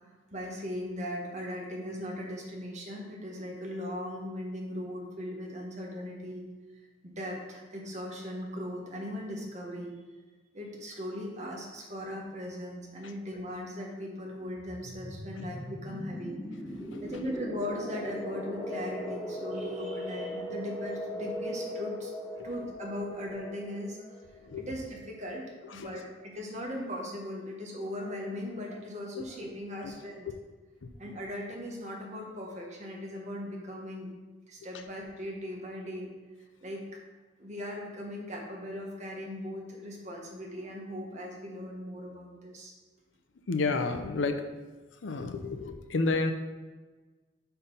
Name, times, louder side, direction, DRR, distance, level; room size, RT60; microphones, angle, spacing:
voice 1, 0.0-6.4 7.0-9.9 10.5-16.4 17.0-22.1 22.4-30.3 31.0-34.1 34.5-36.1 36.6-36.8 37.4-42.7, equal, 40° right, -1 dB, 1.3 m, -39 dB
sound 1, 14.6-25.0, equal, 20° left, 1.5 m, -39 dB
voice 2, 16.9-17.2 22.4-22.7 24.4-24.7 25.7-25.9 29.1-29.2 29.8-29.9 30.8-30.9 43.5-44.4 45.0-46.3, left 3 dB, 80° left, 7 dB, 0.6 m, -31 dB
5.2 x 4.5 x 5.5 m, 1.3 s
head